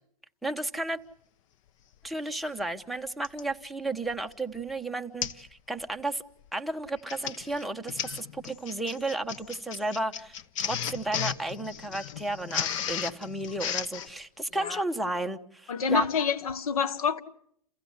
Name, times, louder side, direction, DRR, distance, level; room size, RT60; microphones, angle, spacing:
voice 1, 0.4-1.0 2.0-6.2 6.5-16.1, right 2 dB, ahead, 1.0 m, -33 dB
Printer, 2.0-2.1 3.2-3.5 4.1-4.3 4.6-4.7 5.2-5.5 5.8-6.1 6.9-14.1, left 9 dB, 60° left, 1.1 m, -35 dB
voice 2, 15.7-17.2, left 6 dB, 80° left, 1.5 m, -27 dB
28.5 x 16.0 x 8.1 m
hypercardioid pair, 120°, 18 cm